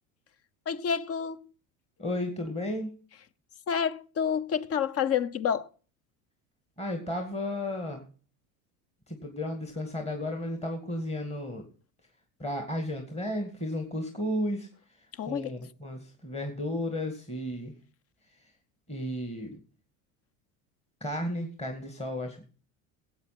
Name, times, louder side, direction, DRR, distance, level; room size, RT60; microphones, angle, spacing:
voice 1, 0.7-1.5 3.7-5.7 15.1-15.5, left 7 dB, 35° left, 0.8 m, -29 dB
voice 2, 2.0-3.0 6.8-8.0 9.1-11.6 12.4-14.7 15.2-17.7 18.9-19.6 21.0-22.4, left 1 dB, 15° left, 2.2 m, -33 dB
15.5 x 8.5 x 5.9 m
supercardioid pair, 95°, 41 cm